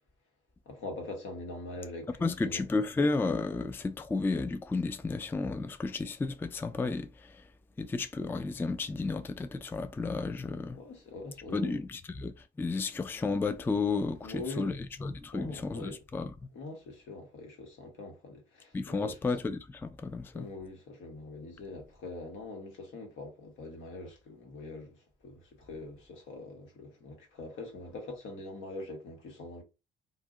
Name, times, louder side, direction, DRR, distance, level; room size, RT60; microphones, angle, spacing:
voice 1, 0.6-2.6 10.7-11.8 14.2-14.8 15.3-16.0 16.5-19.2 20.3-29.6, left 2 dB, 80° left, 1.2 m, -43 dB
voice 2, 2.2-7.4 7.8-10.8 11.5-14.7 15.0-16.3 18.7-20.5, left 3 dB, 10° left, 0.3 m, -32 dB
2.5 x 2.1 x 3.6 m
cardioid pair, 90°, 20 cm